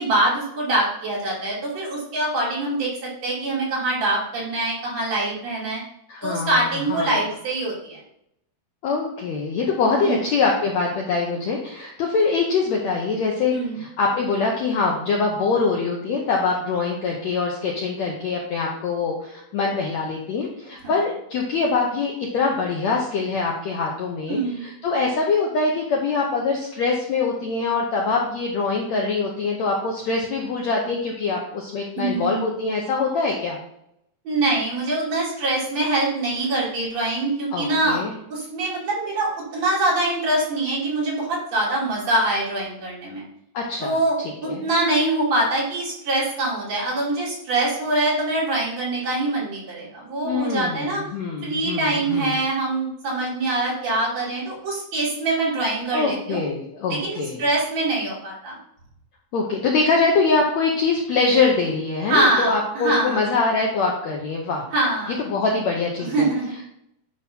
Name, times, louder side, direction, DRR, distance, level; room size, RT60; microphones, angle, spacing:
voice 1, 0.0-5.8 6.2-8.0 10.0-10.2 13.5-13.8 24.3-24.7 32.0-32.5 34.3-38.0 38.3-43.3 43.8-51.0 51.4-56.4 56.9-58.6 62.1-63.2 64.7-65.2 66.0-66.6, right 2 dB, 50° right, -6 dB, 3.7 m, -24 dB
voice 2, 6.1-7.2 8.8-33.6 37.5-38.2 43.5-44.7 50.2-52.4 55.9-57.4 59.3-64.7 65.1-66.3, left 4 dB, 70° left, -1 dB, 1.7 m, -24 dB
10.0 x 3.5 x 5.4 m, 0.76 s
omnidirectional pair, 4.3 m